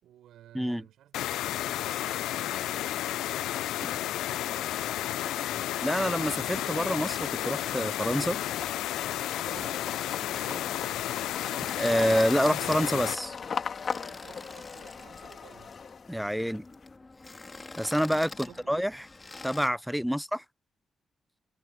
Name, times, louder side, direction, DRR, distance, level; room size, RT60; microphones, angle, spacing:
voice 1, 0.0-5.7 9.3-11.3 14.0-15.7 18.3-18.8 20.1-20.2, right 12 dB, 80° right, 5.2 m, -54 dB
sound 1, 1.1-13.2, left 13 dB, 80° left, 0.4 m, -32 dB
sound 2, 3.5-16.9, left 6 dB, 55° left, 3.1 m, -41 dB
voice 2, 5.8-8.4 11.8-13.4 16.1-16.6 17.8-19.0 19.4-20.4, equal, ahead, 0.4 m, -27 dB
sound 3, 6.2-19.7, left 3 dB, 30° left, 3.7 m, -47 dB
supercardioid pair, 45°, 0 cm